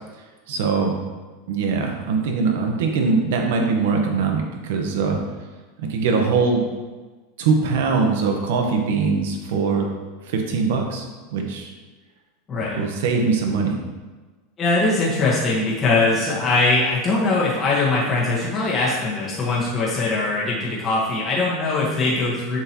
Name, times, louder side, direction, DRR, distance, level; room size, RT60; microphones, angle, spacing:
voice 1, 0.5-1.0 1.5-5.2 5.8-6.6 7.4-9.9 10.2-11.0 11.3-11.7 12.7-13.8, right 4 dB, 80° right, 2 dB, 1.2 m, -22 dB
voice 2, 14.6-22.6, left 3 dB, 25° left, -6 dB, 1.4 m, -21 dB
7.2 x 6.0 x 3.1 m, 1.3 s
supercardioid pair, 145°, 0 cm